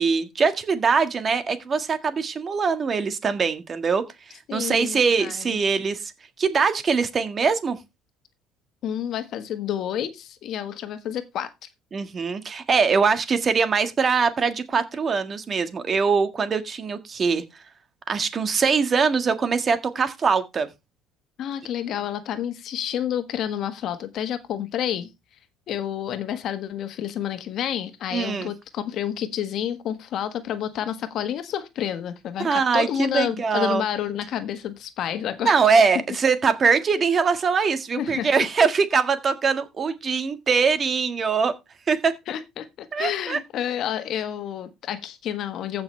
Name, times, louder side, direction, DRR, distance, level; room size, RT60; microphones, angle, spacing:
voice 1, 0.0-4.0 4.5-6.1 6.4-7.8 11.9-17.4 18.1-20.7 28.1-28.5 32.4-33.8 35.4-41.5 41.9-42.1 42.9-43.4, right 5 dB, 35° right, 1.7 m, -22 dB
voice 2, 4.5-5.6 8.8-11.7 21.4-25.1 25.7-35.6 38.0-38.5 42.3-45.8, left 10 dB, 60° left, 1.4 m, -29 dB
15.0 x 6.0 x 3.3 m
supercardioid pair, 95°, 0 cm